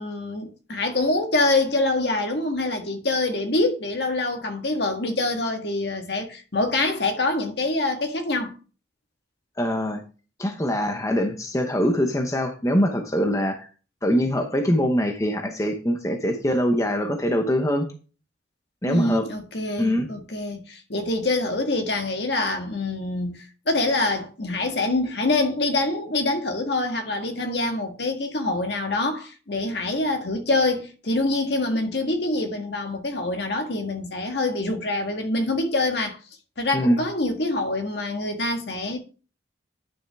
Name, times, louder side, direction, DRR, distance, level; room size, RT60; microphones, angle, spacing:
voice 1, 0.0-8.5 18.8-36.2 36.6-39.0, left 2 dB, 65° left, 1.7 m, -25 dB
voice 2, 9.6-10.0 10.4-13.7 14.0-17.9 18.8-19.3 19.8-20.1 36.7-37.0, equal, 15° left, 0.9 m, -23 dB
10.0 x 6.3 x 3.5 m
head